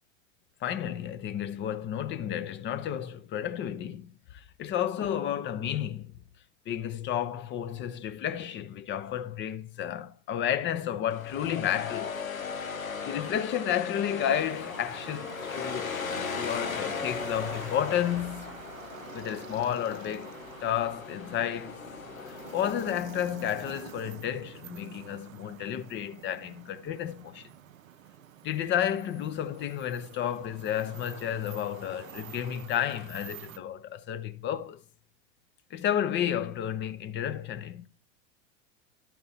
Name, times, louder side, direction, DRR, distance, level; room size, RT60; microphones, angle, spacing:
voice 1, 0.6-6.1 6.7-12.2 13.0-15.9 16.3-18.6 19.1-20.3 20.6-21.8 22.2-27.5 28.4-34.8 35.7-37.9, left 10 dB, 30° left, 0.6 m, -31 dB
sound 1, 11.1-23.0, left 6 dB, 90° left, 0.9 m, -38 dB
sound 2, 14.3-33.6, right 10 dB, 80° right, 0.6 m, -47 dB
sound 3, 17.1-20.5 20.8-20.9, left 5 dB, 65° left, 2.2 m, -54 dB
11.5 x 4.2 x 4.2 m
hypercardioid pair, 90°, 40 cm